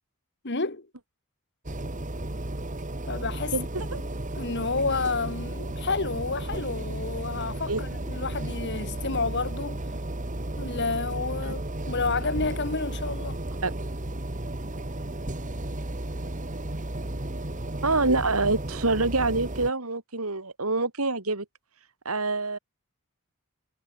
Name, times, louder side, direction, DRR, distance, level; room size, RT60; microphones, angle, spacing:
voice 1, 0.4-0.9 3.1-3.6 4.4-9.8 10.6-13.4, left 3 dB, 55° left, 2.3 m, -30 dB
sound 1, 1.7-19.7, right 1 dB, 35° right, 2.0 m, -33 dB
voice 2, 3.5-4.0 7.7-7.8 11.4-11.6 13.6-13.7 17.8-21.5 22.1-22.6, right 3 dB, 80° right, 3.7 m, -26 dB
head